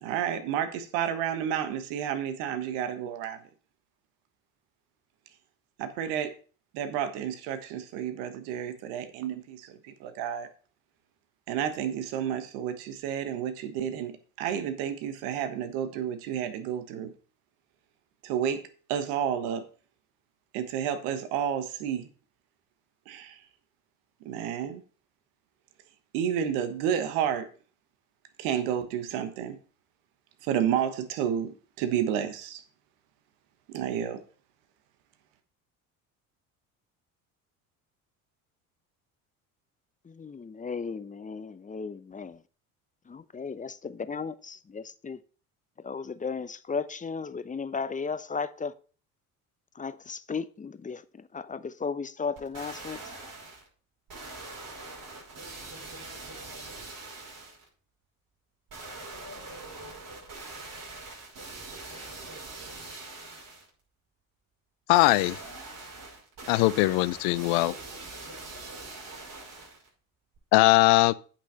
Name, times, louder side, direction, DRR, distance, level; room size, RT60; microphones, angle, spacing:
voice 1, 0.0-3.4 5.8-6.3 6.7-10.5 11.5-17.1 18.2-18.6 18.9-19.6 20.5-22.1 23.1-23.4 24.2-24.8 26.1-27.5 28.4-29.6 30.4-32.6 33.7-34.2, right 9 dB, 70° right, 1.3 m, -31 dB
voice 2, 40.1-42.4 43.1-45.2 45.8-48.7 49.8-51.0 51.3-53.0, left 5 dB, 20° left, 0.7 m, -35 dB
sound 1, 52.4-53.7 54.1-57.7 58.7-63.7 64.9-69.9 70.4-70.5, right 3 dB, 50° right, 5.9 m, -43 dB
voice 3, 64.9-65.4 66.5-67.7 70.5-71.1, left 20 dB, 65° left, 0.7 m, -21 dB
8.6 x 6.0 x 5.6 m
hypercardioid pair, 65°, 43 cm